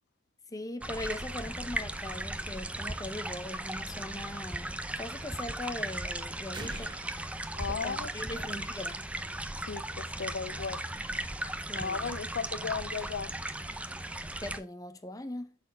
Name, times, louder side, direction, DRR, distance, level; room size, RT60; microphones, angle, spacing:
voice 1, 0.5-6.9 7.7-9.0 11.7-12.1 14.4-15.6, left 1 dB, 20° left, 0.9 m, -40 dB
sound 1, 0.8-14.6, right 1 dB, 5° right, 0.5 m, -37 dB
sound 2, 6.5-8.5, right 2 dB, 25° right, 1.3 m, -46 dB
voice 2, 7.6-8.5 9.7-10.8 11.7-13.3, left 5 dB, 60° left, 0.5 m, -36 dB
11.0 x 4.3 x 4.3 m
head